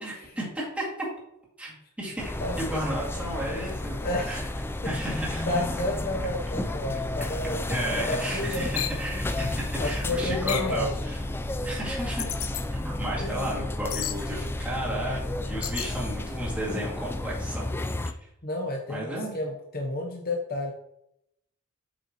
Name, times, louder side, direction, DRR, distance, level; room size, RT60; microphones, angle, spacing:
voice 1, 0.0-1.1 1.6-4.4 4.8-5.5 7.7-11.2 11.6-12.3 12.7-17.7 18.9-19.3, equal, 5° right, -6 dB, 2.2 m, -33 dB
sound 1, 2.2-18.1, left 1 dB, 10° left, 0.3 m, -32 dB
voice 2, 4.0-4.5 5.0-5.2 5.5-9.2 9.8-10.9 11.5-11.7 12.2-12.3 13.2-13.5 18.4-20.7, left 1 dB, 45° left, 1 dB, 0.8 m, -31 dB
sound 2, 8.8-9.0 10.5-10.8 12.2-12.6 13.9-14.2 15.6-15.9, left 11 dB, 85° left, 0.7 m, -32 dB
8.2 x 5.6 x 3.0 m, 0.79 s
head